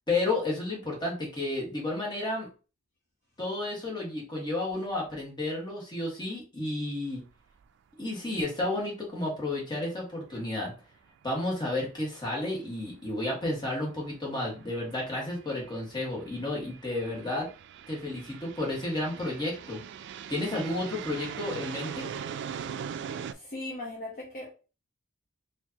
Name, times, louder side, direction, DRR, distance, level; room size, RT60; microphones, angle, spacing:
voice 1, 0.1-2.5 3.4-7.2 8.0-10.7 11.2-17.5 17.9-19.8 20.3-22.1, left 2 dB, 20° left, 1.5 m, -32 dB
sound 1, 7.2-7.3 7.6-7.7 11.8-11.9 12.9-13.1 13.8-23.3, right 7 dB, 60° right, 0.3 m, -41 dB
voice 2, 23.1-24.5, left 2 dB, 45° left, 0.9 m, -39 dB
4.5 x 2.6 x 2.8 m
head